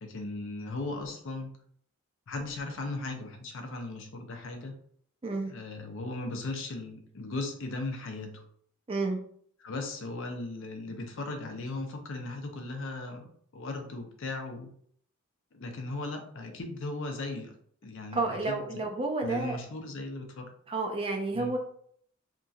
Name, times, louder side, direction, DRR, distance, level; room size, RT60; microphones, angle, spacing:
voice 1, 0.0-1.5 2.3-4.7 5.5-8.4 9.6-13.2 13.5-14.7 15.5-17.5 17.8-18.8 19.2-20.5 21.3-21.5, left 2 dB, 65° left, 4 dB, 0.5 m, -37 dB
voice 2, 8.9-9.2 18.1-19.6 20.7-21.6, right 3 dB, 25° right, 2 dB, 0.4 m, -30 dB
2.9 x 2.6 x 2.3 m, 0.62 s
head